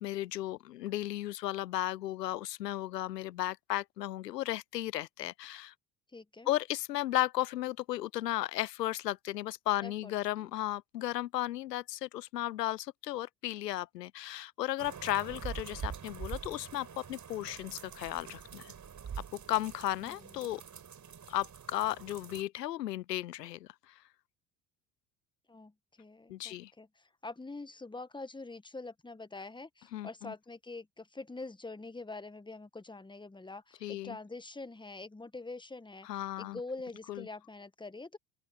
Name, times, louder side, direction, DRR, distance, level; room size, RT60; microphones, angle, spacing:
voice 1, 0.0-5.7 6.5-18.7 19.3-20.6 21.3-23.9 26.3-26.7 29.9-30.3 33.8-34.2 36.0-36.6 37.1-37.3, left 14 dB, 85° left, 0.7 m, -35 dB
voice 2, 6.1-6.5 9.8-10.1 10.4-10.5 20.0-20.4 25.5-38.2, left 3 dB, 10° left, 1.6 m, -45 dB
sound 1, 14.8-22.4, right 7 dB, 35° right, 7.3 m, -45 dB
open air
hypercardioid pair, 60°, 47 cm